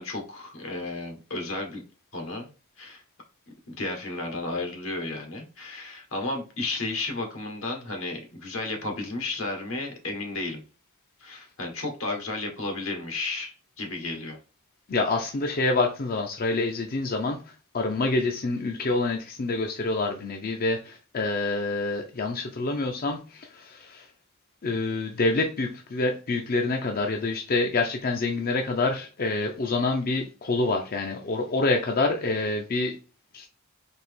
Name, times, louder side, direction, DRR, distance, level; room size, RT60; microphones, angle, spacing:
voice 1, 0.0-1.8 2.1-2.5 2.8-3.0 3.7-10.6 11.2-14.4, left 2 dB, 80° left, 1.4 m, -33 dB
voice 2, 14.9-17.4 17.7-24.1 24.6-33.0 33.3-33.5, left 3 dB, 45° left, 0.6 m, -27 dB
4.2 x 2.9 x 3.5 m
head